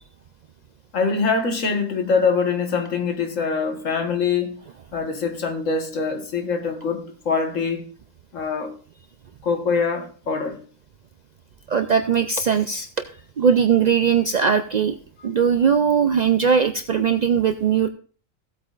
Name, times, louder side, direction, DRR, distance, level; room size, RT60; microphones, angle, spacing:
voice 1, 0.9-4.6 4.9-7.9 8.3-8.7 9.4-10.6, left 5 dB, 70° left, 1.8 m, -24 dB
voice 2, 11.7-12.9 13.4-15.0 15.2-17.9, right 7 dB, 70° right, 0.4 m, -19 dB
16.5 x 8.3 x 2.4 m
omnidirectional pair, 1.4 m